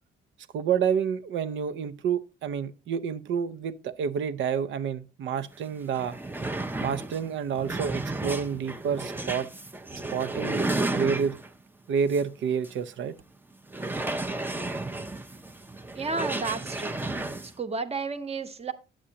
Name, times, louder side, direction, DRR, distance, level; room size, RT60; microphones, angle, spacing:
voice 1, 0.5-6.2 6.8-9.5 9.9-11.4 11.9-13.1, right 7 dB, 70° right, 0.6 m, -29 dB
sound 1, 5.5-5.6 5.9-11.6 12.1-12.2 12.6-12.7 13.7-17.5, right 2 dB, 10° right, 0.6 m, -32 dB
voice 2, 15.9-17.0 17.4-18.7, right 4 dB, 30° right, 0.9 m, -32 dB
10.0 x 7.3 x 2.8 m
cardioid pair, 90°, 20 cm